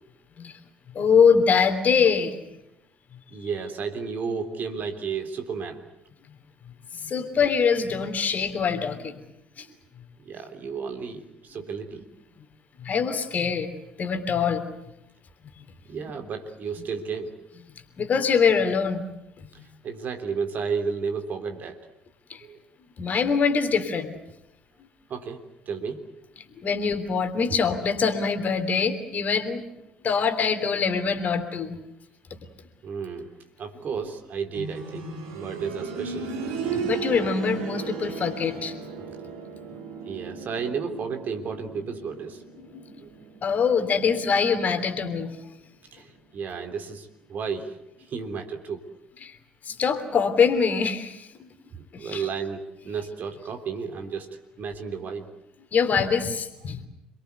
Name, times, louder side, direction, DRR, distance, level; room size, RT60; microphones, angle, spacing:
voice 1, 0.9-2.4 6.9-9.2 9.6-9.7 12.8-13.7 14.0-14.6 18.0-19.1 19.4-19.6 22.3-22.4 23.0-24.1 26.6-31.8 36.7-38.7 42.7-43.0 43.4-45.3 49.2-49.4 49.6-51.5 51.9-52.2 55.7-56.8, left 6 dB, 45° left, 8 dB, 3.2 m, -24 dB
voice 2, 3.3-5.8 10.2-12.0 15.9-17.4 19.8-21.8 22.4-22.6 25.1-25.4 25.7-26.2 27.5-27.6 32.8-36.3 39.0-39.1 40.1-42.5 43.0-43.1 45.9-47.8 48.1-48.8 51.7-55.3, right 5 dB, 45° right, 6 dB, 3.3 m, -33 dB
sound 1, 34.5-45.3 45.6-45.7 46.6-46.7, right 5 dB, 70° right, 3.6 m, -36 dB
28.0 x 22.0 x 8.2 m, 0.84 s
figure-of-eight pair, 50°, 4 cm